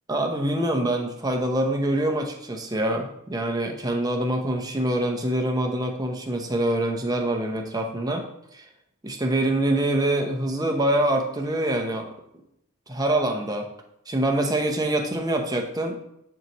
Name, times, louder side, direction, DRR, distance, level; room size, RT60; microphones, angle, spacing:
voice 1, 0.1-8.2 8.5-8.6 9.0-12.1 12.9-13.7 14.1-16.0, right 1 dB, 15° right, 3 dB, 0.8 m, -25 dB
9.6 x 4.7 x 3.0 m, 0.78 s
head